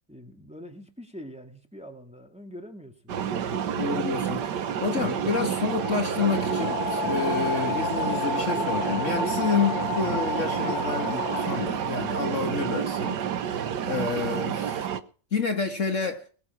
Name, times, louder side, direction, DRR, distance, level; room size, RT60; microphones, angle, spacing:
voice 1, 0.1-3.6, equal, 5° right, 2.1 m, -44 dB
sound 1, 3.1-15.0, right 8 dB, 70° right, 1.6 m, -29 dB
voice 2, 3.8-14.9 15.3-16.3, left 5 dB, 45° left, 1.7 m, -29 dB
sound 2, 4.5-12.1, left 3 dB, 90° left, 2.7 m, -32 dB
20.5 x 7.8 x 6.0 m
omnidirectional pair, 1.9 m